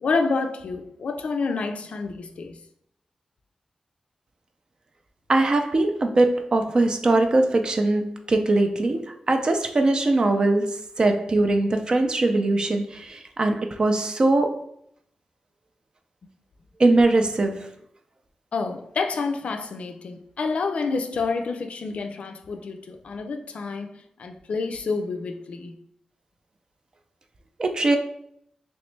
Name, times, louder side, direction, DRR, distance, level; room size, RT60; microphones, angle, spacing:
voice 1, 0.0-2.6 18.5-23.9 24.2-25.8, left 4 dB, 70° left, 0.4 m, -28 dB
voice 2, 5.3-14.6 16.8-17.7 27.6-28.0, right 2 dB, 40° right, 0.4 m, -21 dB
3.1 x 3.0 x 3.2 m
wide cardioid pair, 125°, 2 cm